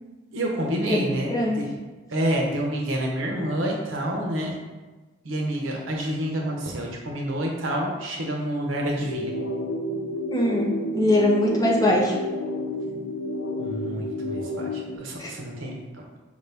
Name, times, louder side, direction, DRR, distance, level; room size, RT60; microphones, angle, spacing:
voice 1, 0.3-1.7 2.1-4.6 5.2-9.3 13.6-16.2, right 1 dB, 85° right, 0 dB, 0.9 m, -28 dB
voice 2, 1.3-1.6 10.3-12.1 15.2-15.3, left 1 dB, 20° left, -3 dB, 0.7 m, -22 dB
sound 1, 9.0-15.0, left 1 dB, 85° left, 0.5 m, -30 dB
5.1 x 2.7 x 3.4 m, 1.2 s
head